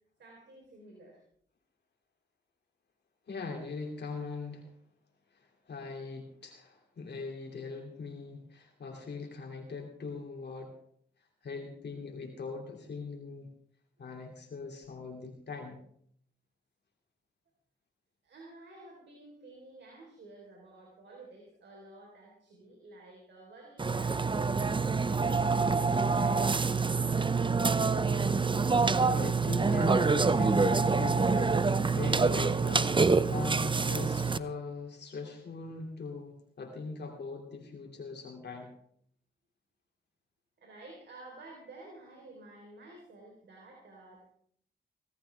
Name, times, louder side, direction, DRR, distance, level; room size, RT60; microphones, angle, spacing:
voice 1, 0.2-1.2 18.2-27.0 40.6-44.2, right 2 dB, 70° right, -1 dB, 4.0 m, -52 dB
voice 2, 3.3-4.7 5.3-10.8 11.2-13.5 14.0-15.8 29.0-38.7, left 3 dB, 60° left, 1 dB, 2.7 m, -40 dB
Burping eructation, 23.8-34.4, right 4 dB, 25° right, 0.7 m, -26 dB
22.5 x 13.0 x 3.4 m, 0.64 s
supercardioid pair, 45°, 19 cm